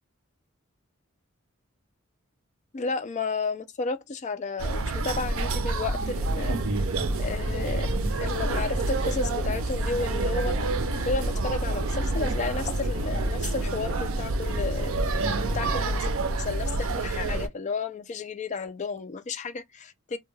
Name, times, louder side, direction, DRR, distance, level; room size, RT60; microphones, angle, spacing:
voice 1, 2.7-6.8 7.2-7.9 8.2-14.9 15.5-20.2, left 4 dB, 35° left, 0.4 m, -33 dB
sound 1, 4.6-17.5, right 2 dB, 65° right, 0.4 m, -28 dB
sound 2, 6.1-15.8, equal, 25° right, 1.0 m, -38 dB
2.2 x 2.2 x 3.2 m
head